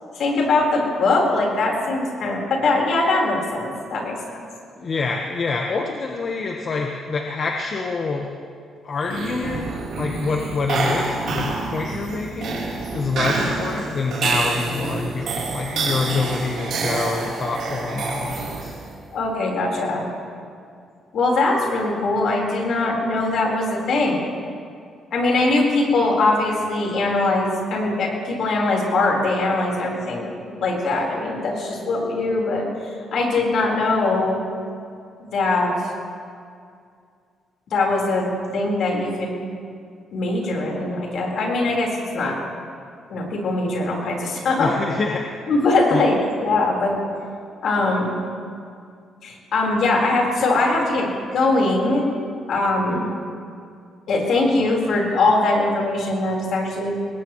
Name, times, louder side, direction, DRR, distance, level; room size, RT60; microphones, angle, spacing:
voice 1, 0.1-4.4 19.1-20.1 21.1-24.2 25.1-30.3 30.6-32.6 33.1-34.4 35.2-35.7 37.7-38.3 38.5-39.3 40.1-42.4 43.1-44.7 45.5-46.9 47.6-48.1 49.2-52.0 52.5-53.1 54.1-56.9, left 2 dB, 65° left, -1 dB, 4.3 m, -21 dB
voice 2, 4.8-8.3 8.8-9.7 9.9-18.7 44.5-46.1, left 4 dB, 50° left, 2 dB, 1.2 m, -26 dB
sound 1, 9.0-18.9, right 4 dB, 70° right, 3.7 m, -27 dB
20.5 x 19.5 x 3.1 m, 2.3 s
cardioid pair, 90°, 0 cm